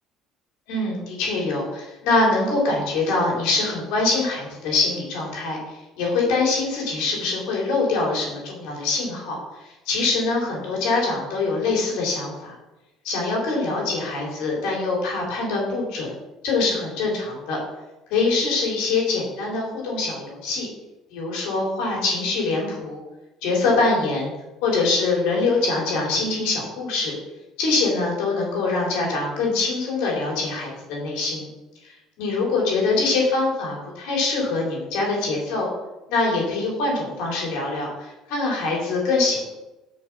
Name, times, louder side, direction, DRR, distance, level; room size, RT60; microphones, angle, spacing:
voice 1, 0.7-12.6 13.0-16.1 16.4-17.6 18.1-20.7 21.1-23.0 23.4-24.3 24.6-27.1 27.6-31.5 31.8-35.7 36.1-39.4, left 3 dB, 80° left, -2 dB, 3.2 m, -24 dB
6.8 x 5.3 x 5.9 m, 1.0 s
supercardioid pair, 100°, 0 cm